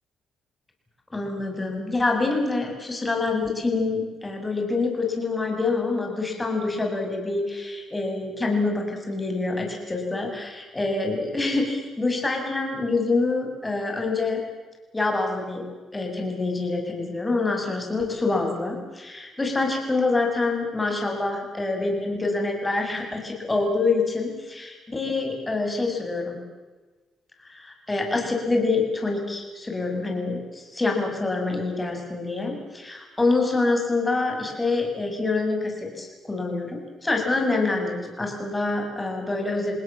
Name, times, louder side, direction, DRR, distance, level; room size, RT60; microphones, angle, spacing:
voice 1, 1.1-10.4 10.8-14.4 14.9-15.6 15.9-26.4 27.5-39.8, left 3 dB, 20° left, 2 dB, 7.2 m, -26 dB
28.5 x 19.0 x 7.5 m, 1.3 s
cardioid pair, 90°, 0 cm